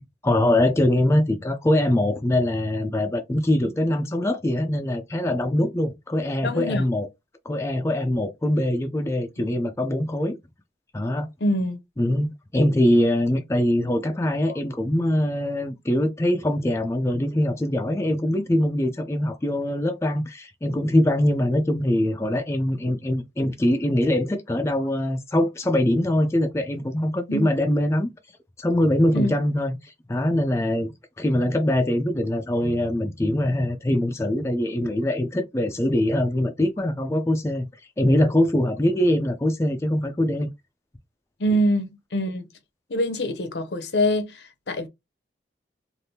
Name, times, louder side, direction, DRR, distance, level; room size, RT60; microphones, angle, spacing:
voice 1, 0.2-7.1 7.5-10.4 10.9-11.3 12.0-28.1 28.6-37.7 38.0-40.5, left 1 dB, 15° left, 0.4 m, -23 dB
voice 2, 6.4-6.9 11.4-11.8 27.3-27.5 29.1-29.3 41.4-42.5 42.9-44.9, equal, 70° left, 0.7 m, -24 dB
3.4 x 2.5 x 2.7 m
head